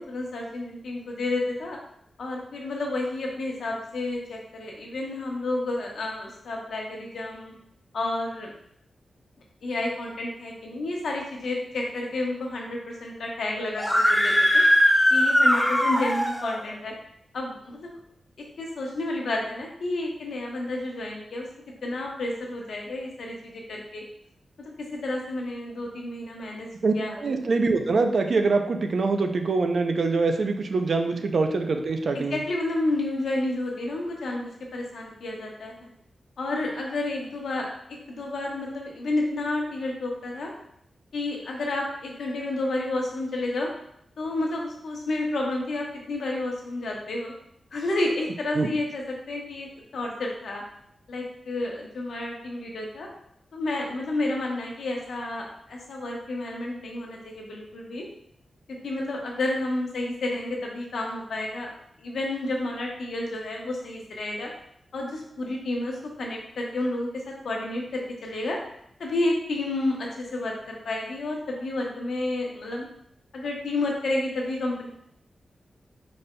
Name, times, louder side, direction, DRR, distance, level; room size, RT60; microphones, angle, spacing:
voice 1, 0.0-1.8 2.2-7.5 7.9-8.5 9.6-14.6 15.1-16.9 17.3-18.0 18.6-21.5 21.8-24.0 24.6-26.7 26.9-27.2 32.1-35.9 36.4-40.5 41.1-43.7 44.2-47.3 47.7-50.6 51.1-53.1 53.5-58.1 58.8-61.7 62.0-64.5 64.9-68.6 69.0-72.9 73.3-74.9, left 2 dB, 85° left, -1 dB, 0.9 m, -30 dB
Screaming, 13.8-16.6, equal, 5° left, 0.4 m, -20 dB
voice 2, 26.8-32.4 48.5-48.7, right 3 dB, 55° right, 5 dB, 0.4 m, -24 dB
5.0 x 4.2 x 2.2 m, 0.72 s
wide cardioid pair, 160°, 0 cm